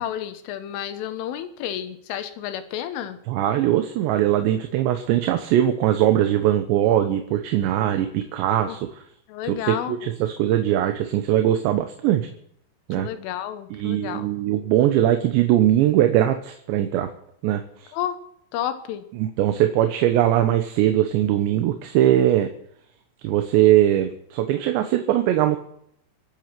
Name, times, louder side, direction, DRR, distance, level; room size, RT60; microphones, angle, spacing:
voice 1, 0.0-3.2 8.7-8.8 9.3-10.1 13.0-14.3 17.9-18.2 18.5-19.0, left 10 dB, 85° left, 10 dB, 3.9 m, -31 dB
voice 2, 3.3-9.0 9.6-12.3 12.9-13.1 13.7-17.1 17.4-17.9 19.2-22.5 23.2-25.6, right 12 dB, 75° right, 7 dB, 3.1 m, -21 dB
25.5 x 9.3 x 6.0 m, 0.71 s
omnidirectional pair, 5.6 m